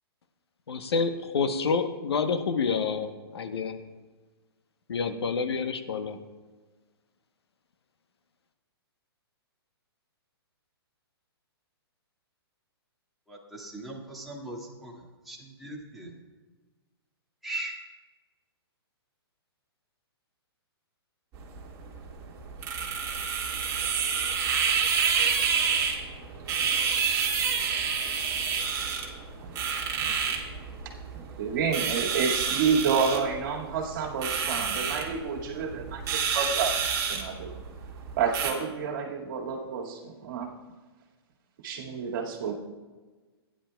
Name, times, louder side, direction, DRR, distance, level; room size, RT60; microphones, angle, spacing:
voice 1, 0.7-3.8 4.9-6.2, left 5 dB, 75° left, 8 dB, 1.0 m, -28 dB
voice 2, 13.3-14.9 15.3-16.1 17.4-17.7, right 2 dB, ahead, -4 dB, 1.8 m, -39 dB
sound 1, 21.3-38.5, right 6 dB, 25° right, 1.8 m, -29 dB
voice 3, 31.4-37.5 38.2-40.5 41.6-42.5, right 6 dB, 50° right, 0 dB, 2.0 m, -29 dB
16.5 x 10.0 x 2.3 m, 1.3 s
hypercardioid pair, 135°, 14 cm